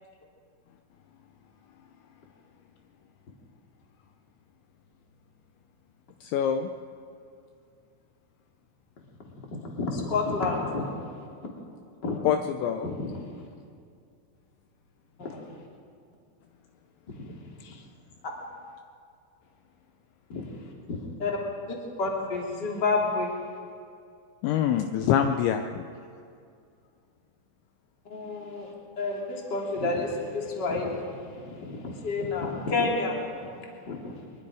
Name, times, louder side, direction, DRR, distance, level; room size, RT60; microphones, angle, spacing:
voice 1, 6.2-6.7 12.2-12.9 17.6-17.8 24.4-25.9, left 9 dB, 80° left, 6 dB, 2.8 m, -25 dB
voice 2, 9.2-11.1 12.0-12.2 12.8-13.2 15.2-15.5 17.1-17.4 20.3-20.5 20.9-21.4 21.7-23.3 28.0-33.6 33.8-34.2, left 3 dB, 25° left, -2 dB, 2.7 m, -30 dB
23.5 x 23.0 x 5.0 m, 2.4 s
omnidirectional pair, 5.8 m